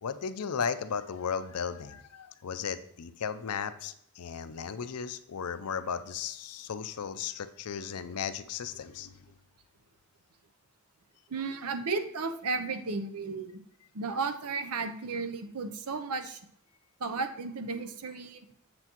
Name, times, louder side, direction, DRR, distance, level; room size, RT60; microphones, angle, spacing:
voice 1, 0.0-9.1, left 6 dB, 85° left, 12 dB, 0.5 m, -35 dB
voice 2, 11.3-13.5 13.9-16.4 17.0-18.4, right 4 dB, 85° right, 9 dB, 0.7 m, -34 dB
7.7 x 6.8 x 3.0 m, 0.69 s
head